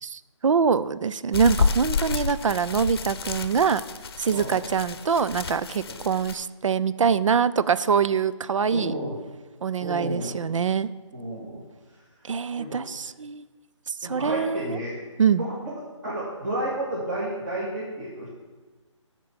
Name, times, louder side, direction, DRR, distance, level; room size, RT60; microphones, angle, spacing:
voice 1, 0.0-3.8 4.2-8.9 9.6-10.9 12.2-13.4 13.9-14.8 15.2-15.4, right 6 dB, 80° right, 16 dB, 0.5 m, -24 dB
sound 1, 1.3-6.3, left 5 dB, 50° left, 0.7 m, -29 dB
voice 2, 4.3-4.6 5.9-6.0 8.7-9.1 9.8-10.3 11.1-11.6 12.6-12.8 14.0-14.9 15.4-15.8 16.0-18.3, right 1 dB, 40° right, -6 dB, 2.1 m, -31 dB
12.5 x 4.5 x 6.9 m, 1.3 s
hypercardioid pair, 160°, 16 cm